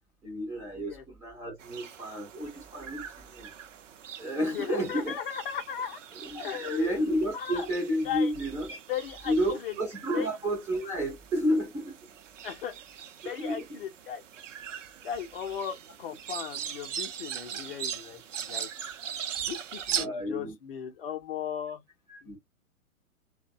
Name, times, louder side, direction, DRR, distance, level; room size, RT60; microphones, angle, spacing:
voice 1, 0.2-3.5 4.2-5.2 6.1-8.8 9.3-12.0 13.4-13.7 19.9-20.6 22.1-22.4, equal, 5° right, 0.5 m, -31 dB
voice 2, 0.7-1.0 4.5-6.0 6.4-7.0 7.3-7.7 8.0-8.3 8.9-9.3 9.6-9.7 10.1-10.3 12.4-12.7 13.2-14.2 15.0-18.7 19.4-21.8 22.2-22.4, left 9 dB, 40° left, 0.6 m, -36 dB
sound 1, 1.6-20.1, right 8 dB, 60° right, 0.6 m, -40 dB
2.6 x 2.2 x 2.4 m
figure-of-eight pair, 115°, 43 cm